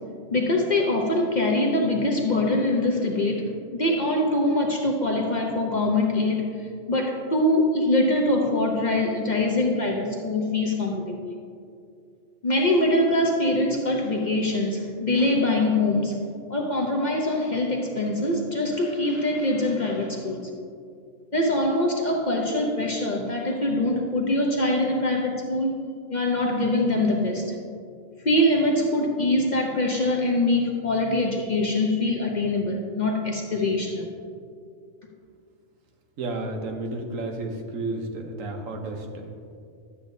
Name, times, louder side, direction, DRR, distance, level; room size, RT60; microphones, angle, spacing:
voice 1, 0.3-6.5 6.9-11.4 12.4-16.2 16.5-20.4 21.3-25.7 26.1-27.5 28.2-34.1, left 1 dB, 40° left, 0 dB, 0.7 m, -23 dB
voice 2, 36.2-39.3, right 2 dB, 85° right, 3 dB, 1.3 m, -32 dB
11.5 x 8.2 x 2.7 m, 2.3 s
omnidirectional pair, 1.3 m